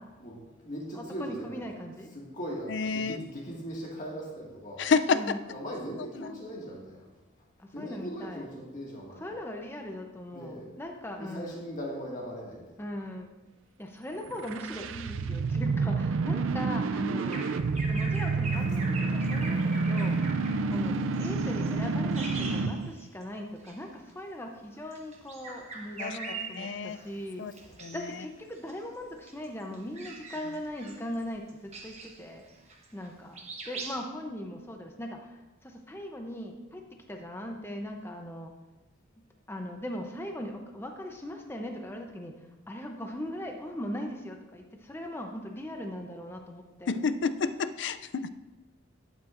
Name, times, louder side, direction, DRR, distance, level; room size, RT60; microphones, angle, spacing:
voice 1, 0.2-1.7 2.1-4.9 5.5-7.1 7.7-9.4 10.3-10.8 11.2-12.9 19.3-20.1 26.9-27.8, equal, 40° left, -3 dB, 1.9 m, -40 dB
voice 2, 1.0-2.1 5.1-5.4 7.6-8.4 9.2-11.6 12.8-13.3 13.8-17.5 17.9-20.2 20.6-27.4 27.9-32.4 32.9-36.8 37.1-38.5 39.5-46.9, left 1 dB, 10° left, 3 dB, 0.6 m, -39 dB
voice 3, 2.8-3.1 4.8-5.4 26.0-26.2 26.6-27.0 27.4-27.5 27.8-28.0 46.9-48.3, left 5 dB, 60° left, 12 dB, 0.4 m, -28 dB
sound 1, 14.3-22.9, right 4 dB, 75° right, 0.4 m, -29 dB
Bird vocalization bird call bird song, 17.2-23.2 23.6-23.8 24.8-27.1 27.6-28.2 28.6-33.1 33.3-34.0, right 3 dB, 30° right, 1.1 m, -42 dB
12.0 x 8.6 x 2.5 m, 1.1 s
head